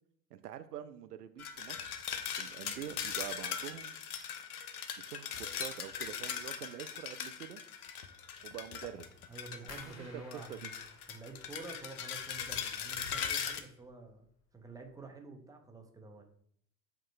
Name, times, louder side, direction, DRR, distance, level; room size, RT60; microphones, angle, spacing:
voice 1, 0.3-1.9 2.4-3.9 5.0-7.6 8.4-9.1 9.9-10.7, right 11 dB, 75° right, 10 dB, 0.5 m, -46 dB
sound 1, 1.4-10.0 10.3-13.6, left 8 dB, 65° left, 0.8 m, -40 dB
voice 2, 9.3-10.7 11.1-14.2 14.5-16.2, right 3 dB, 5° right, 3 dB, 1.1 m, -49 dB
sound 2, 9.7-12.6 12.8-13.5 13.9-14.3 14.7-14.9, left 3 dB, 30° left, 1.8 m, -55 dB
7.9 x 3.0 x 4.4 m, 0.65 s
figure-of-eight pair, 70°, 48 cm